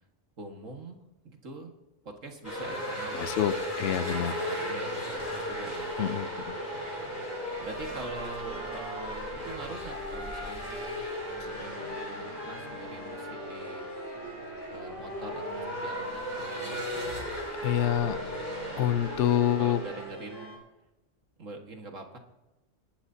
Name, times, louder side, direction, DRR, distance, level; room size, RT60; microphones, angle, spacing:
voice 1, 0.4-1.7 2.0-3.4 4.2-5.9 6.7-7.3 7.6-11.0 11.6-13.9 14.7-17.2 17.8-18.6 19.6-20.6 21.4-22.2, right 3 dB, 90° right, 3 dB, 2.1 m, -44 dB
sound 1, 2.4-20.0, equal, 40° left, 5.6 m, -37 dB
voice 2, 3.2-4.4 6.0-6.5 17.6-18.2 18.8-19.8, left 11 dB, 70° left, 13 dB, 0.9 m, -27 dB
sound 2, 3.8-20.6, right 1 dB, 20° left, 5.9 m, -42 dB
27.0 x 11.5 x 2.8 m, 0.99 s
omnidirectional pair, 1.3 m